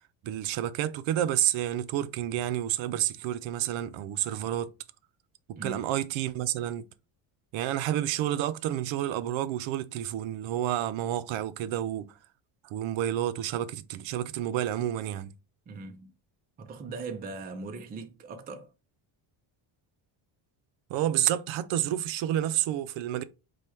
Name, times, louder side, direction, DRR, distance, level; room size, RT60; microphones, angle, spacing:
voice 1, 0.2-4.7 5.5-6.8 7.5-12.1 12.6-15.3 20.9-23.2, right 12 dB, 65° right, 0.5 m, -29 dB
voice 2, 15.7-16.1 16.6-18.7, right 3 dB, 20° right, 0.4 m, -40 dB
4.7 x 2.3 x 4.2 m
cardioid pair, 145°, 50 cm